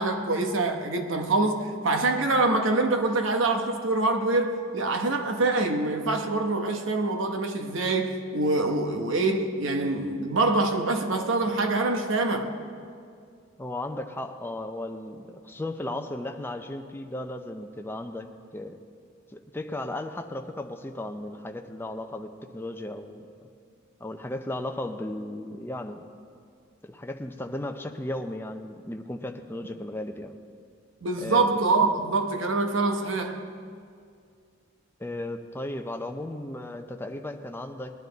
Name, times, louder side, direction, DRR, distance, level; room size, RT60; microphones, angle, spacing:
voice 1, 0.0-12.5 31.0-33.4, right 2 dB, 70° right, 5 dB, 1.0 m, -25 dB
voice 2, 13.6-18.8 19.3-23.3 24.0-26.0 26.8-30.4 31.2-31.5 35.0-37.9, left 1 dB, 10° left, 5 dB, 0.6 m, -35 dB
20.0 x 10.5 x 4.0 m, 2.2 s
head